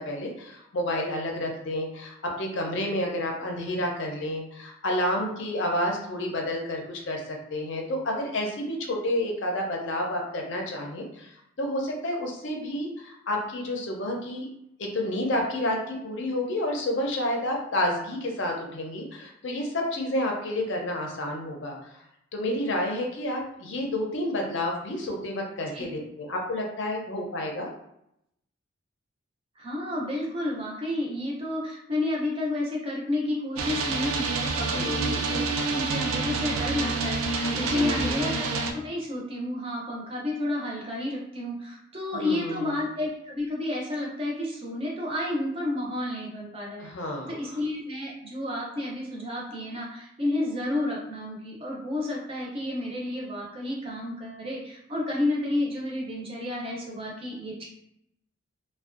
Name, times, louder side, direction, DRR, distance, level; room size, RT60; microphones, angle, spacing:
voice 1, 0.0-7.2 7.5-11.3 11.6-14.5 14.8-21.8 22.3-27.7 34.7-35.2 37.5-38.2 42.1-42.7 46.8-47.3, left 1 dB, 60° left, 0 dB, 0.5 m, -30 dB
voice 2, 29.6-35.4 35.7-38.5 38.7-46.9 47.3-57.7, left 1 dB, 25° right, -3 dB, 0.5 m, -31 dB
sound 1, 33.6-38.7, right 3 dB, 80° right, 0.4 m, -28 dB
2.5 x 2.2 x 2.4 m, 0.78 s
head